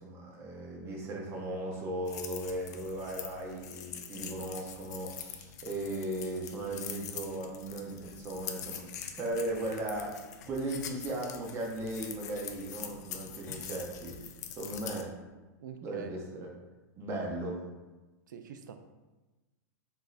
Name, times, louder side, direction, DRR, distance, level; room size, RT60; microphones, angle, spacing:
voice 1, 0.0-8.9 9.2-10.2 10.5-14.1 14.6-15.1 15.8-16.5 17.0-17.6, right 1 dB, 25° right, -1 dB, 0.6 m, -37 dB
sound 1, 2.1-15.0, left 9 dB, 65° left, 0.4 m, -44 dB
voice 2, 15.6-16.2 18.3-18.8, right 6 dB, 85° right, 8 dB, 0.4 m, -44 dB
3.8 x 2.6 x 2.5 m, 1.1 s
supercardioid pair, 145°, 10 cm